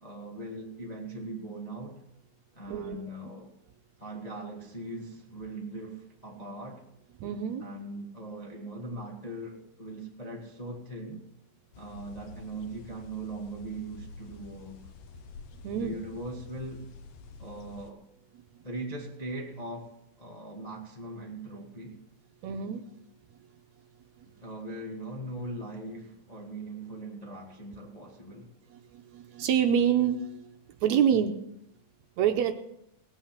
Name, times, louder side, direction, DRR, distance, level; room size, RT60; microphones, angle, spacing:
voice 1, 0.0-2.0 2.5-3.6 4.0-6.9 7.6-11.2 11.8-14.8 15.7-16.9 17.4-18.0 18.6-22.0 24.4-28.5, right 2 dB, 25° left, 0.8 m, -40 dB
voice 2, 2.7-3.1 7.2-7.6 15.6-16.0 22.4-22.8 29.1-30.3 30.8-31.3 32.2-32.5, right 8 dB, 75° right, 1.9 m, -26 dB
sound 1, 11.7-17.9, left 4 dB, 80° left, 2.5 m, -48 dB
18.5 x 9.0 x 5.9 m
omnidirectional pair, 3.7 m